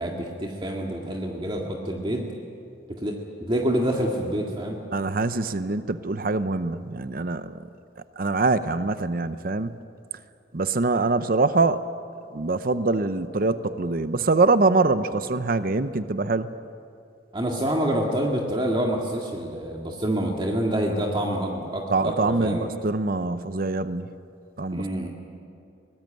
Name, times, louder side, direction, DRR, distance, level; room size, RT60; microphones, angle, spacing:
voice 1, 0.0-2.2 2.9-4.8 17.3-22.7 24.7-25.1, right 1 dB, 30° right, 0 dB, 1.9 m, -27 dB
voice 2, 4.9-7.6 8.2-9.7 10.5-11.8 12.3-16.5 21.9-22.6 22.8-24.2 24.6-24.9, right 3 dB, 55° right, 12 dB, 0.7 m, -24 dB
23.5 x 19.0 x 9.0 m, 2.5 s
head